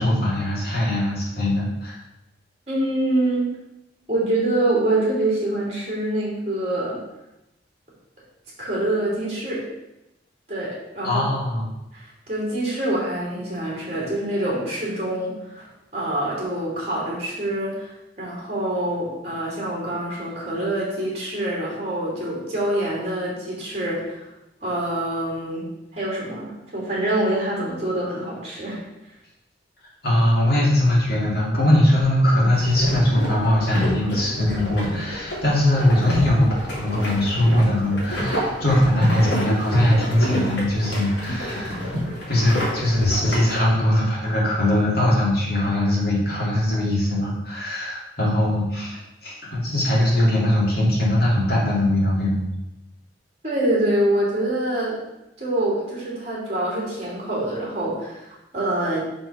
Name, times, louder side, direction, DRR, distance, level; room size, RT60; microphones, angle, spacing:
voice 1, 0.0-2.0 11.0-11.6 30.0-41.8 42.3-52.4, left 1 dB, 55° left, -6 dB, 2.8 m, -21 dB
voice 2, 2.7-3.5 4.1-7.0 8.6-9.7 10.5-11.2 11.9-24.3 24.6-25.7 25.9-28.8 53.4-55.0 55.4-59.1, right 1 dB, 35° right, -4 dB, 3.0 m, -25 dB
sound 1, 32.6-43.6, left 1 dB, 70° left, 2.6 m, -27 dB
6.0 x 5.1 x 5.7 m, 0.94 s
head